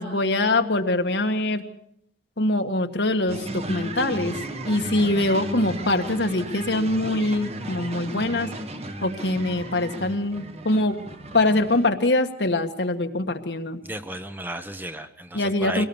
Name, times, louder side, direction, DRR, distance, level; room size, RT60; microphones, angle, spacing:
voice 1, 0.0-1.7 2.4-4.4 4.6-8.5 9.0-11.0 11.3-13.8 15.3-15.9, left 2 dB, 75° left, 6 dB, 1.8 m, -23 dB
sound 1, 3.3-11.9, right 1 dB, 35° right, 1.6 m, -34 dB
voice 2, 13.8-15.9, right 1 dB, 10° right, 9 dB, 1.1 m, -34 dB
23.5 x 18.0 x 7.2 m, 0.73 s
head